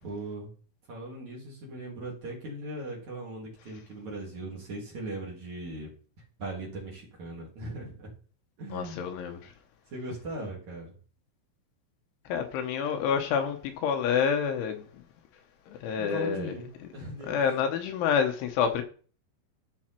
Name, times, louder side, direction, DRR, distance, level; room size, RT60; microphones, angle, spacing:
voice 1, 0.0-0.5 0.9-5.9 6.4-8.1 8.6-9.1 9.9-10.9 15.9-17.4, right 2 dB, 40° right, 3.6 m, -39 dB
voice 2, 8.7-9.5 12.3-15.0 15.7-16.5 17.3-18.8, left 7 dB, 75° left, 3.3 m, -28 dB
13.5 x 5.5 x 4.5 m
omnidirectional pair, 5.7 m